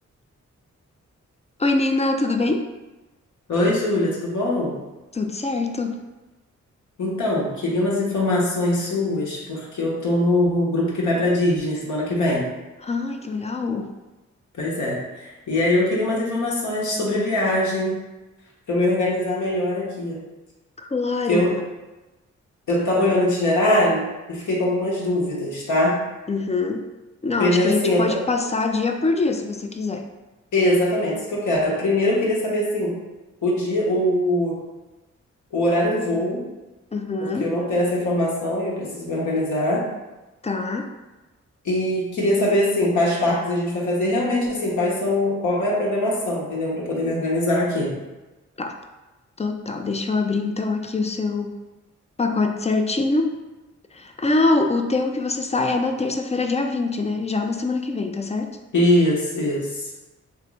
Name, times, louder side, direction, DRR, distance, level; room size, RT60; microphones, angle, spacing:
voice 1, 1.6-2.7 5.1-6.0 12.8-14.0 20.8-21.6 26.3-26.9 27.2-30.1 36.9-37.5 40.4-40.9 48.6-48.8 49.4-51.5 52.2-53.4 53.9-58.6, left 3 dB, 25° left, 5 dB, 0.3 m, -24 dB
voice 2, 3.5-4.8 7.0-12.4 14.6-18.0 18.7-20.2 21.3-21.5 22.7-26.0 27.4-28.2 30.5-33.0 33.4-34.6 35.5-36.4 37.2-39.8 41.6-47.9 58.7-59.9, left 1 dB, 75° left, -5 dB, 0.9 m, -22 dB
3.1 x 2.4 x 3.1 m, 1.1 s
cardioid pair, 50°, 30 cm